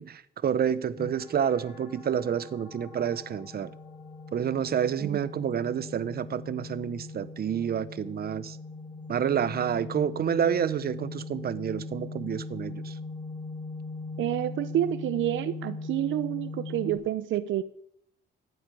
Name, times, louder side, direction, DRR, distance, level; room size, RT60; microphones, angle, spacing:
voice 1, 0.0-3.7 4.3-8.6 9.1-13.0, right 8 dB, 50° right, 1.0 m, -29 dB
sound 1, 1.0-17.0, left 3 dB, 40° left, 7.3 m, -40 dB
voice 2, 14.2-17.6, right 12 dB, 75° right, 0.7 m, -29 dB
14.5 x 8.1 x 9.3 m
cardioid pair, 90°, 20 cm